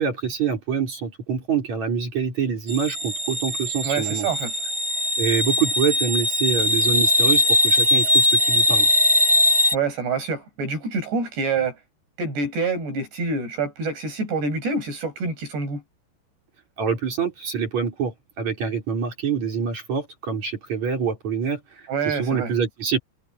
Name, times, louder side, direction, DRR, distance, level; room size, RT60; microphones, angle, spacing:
voice 1, 0.0-4.3 5.2-8.9 16.8-23.0, right 6 dB, 45° right, 5.2 m, -26 dB
sound 1, 2.7-9.7, left 1 dB, 20° right, 4.8 m, -20 dB
voice 2, 3.8-4.5 9.7-11.8 12.2-15.8 21.9-22.5, right 4 dB, 80° right, 9.8 m, -26 dB
omnidirectional pair, 4.8 m